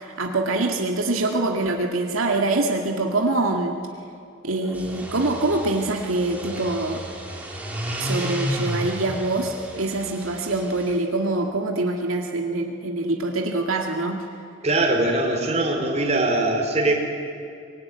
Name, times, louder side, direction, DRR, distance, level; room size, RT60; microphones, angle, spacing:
voice 1, 0.2-3.8 4.4-7.0 8.0-14.3, right 2 dB, 80° right, 2 dB, 2.1 m, -24 dB
sound 1, 4.7-10.9, equal, 5° right, 4.0 m, -32 dB
voice 2, 14.6-17.0, right 2 dB, 35° right, 1 dB, 4.3 m, -22 dB
24.0 x 22.0 x 9.6 m, 2.5 s
head